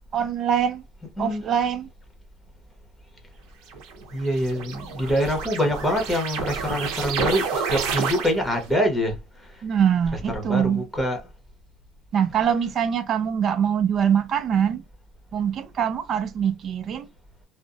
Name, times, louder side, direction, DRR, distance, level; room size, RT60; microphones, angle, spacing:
voice 1, 0.1-0.8 1.2-1.9 9.6-10.9 12.1-14.8 15.3-17.1, right 8 dB, 45° right, 0.4 m, -23 dB
sound 1, 3.7-8.6, right 5 dB, 70° right, 0.7 m, -30 dB
voice 2, 4.1-9.2 10.3-11.2, equal, 5° left, 1.0 m, -25 dB
2.5 x 2.0 x 2.4 m
cardioid pair, 115°, 0 cm